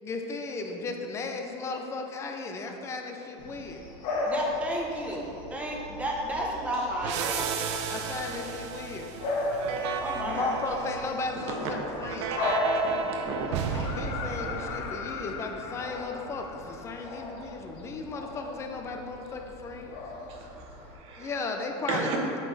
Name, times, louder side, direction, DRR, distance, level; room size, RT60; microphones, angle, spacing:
voice 1, 0.0-3.8 7.9-9.1 10.2-12.4 13.7-20.0 21.2-22.1, left 3 dB, 20° left, 3 dB, 0.5 m, -35 dB
Bark / Bird vocalization bird call bird song, 3.4-20.9, left 2 dB, 60° left, 1.4 m, -36 dB
voice 2, 4.2-7.5 9.4-9.6 10.0-10.8, right 1 dB, 10° right, -2 dB, 0.8 m, -32 dB
sound 1, 7.0-15.5, right 6 dB, 80° right, 0.6 m, -34 dB
sound 2, 13.7-17.5 19.4-19.5, left 7 dB, 85° left, 0.5 m, -40 dB
voice 3, 20.3-21.3 21.9-22.4, right 3 dB, 40° right, 0 dB, 1.1 m, -34 dB
8.2 x 5.6 x 4.0 m, 3.0 s
cardioid pair, 175°, 14 cm